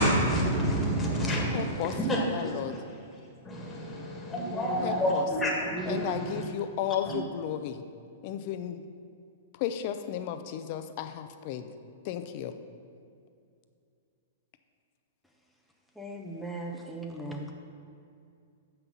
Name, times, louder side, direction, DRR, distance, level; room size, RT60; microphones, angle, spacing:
voice 1, 0.0-2.8 3.4-6.4 7.1-7.2, equal, 15° left, -1 dB, 1.7 m, -28 dB
voice 2, 1.5-2.8 4.8-5.3 5.9-7.8 8.2-8.8 9.5-11.7 12.0-12.5, left 10 dB, 50° left, 9 dB, 0.6 m, -34 dB
voice 3, 16.0-17.5, right 1 dB, ahead, -1 dB, 0.8 m, -38 dB
7.8 x 5.8 x 5.5 m, 2.4 s
hypercardioid pair, 115°, 0 cm